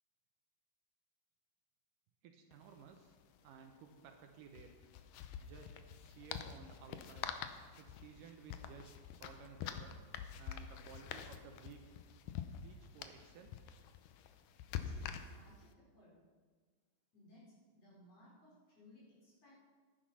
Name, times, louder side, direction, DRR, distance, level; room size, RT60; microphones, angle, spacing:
voice 1, 2.2-3.2 3.4-4.7 5.4-5.7 6.0-7.3 7.8-10.0 10.4-11.9 12.6-13.5, right 6 dB, 75° right, 5 dB, 2.3 m, -56 dB
sound 1, 2.5-2.6 2.8-3.0 4.5-15.7, left 9 dB, 80° left, 2.0 m, -46 dB
voice 2, 14.7-16.2 17.1-19.5, left 1 dB, 45° left, -6 dB, 5.6 m, -62 dB
11.5 x 10.5 x 5.6 m, 1.4 s
omnidirectional pair, 4.2 m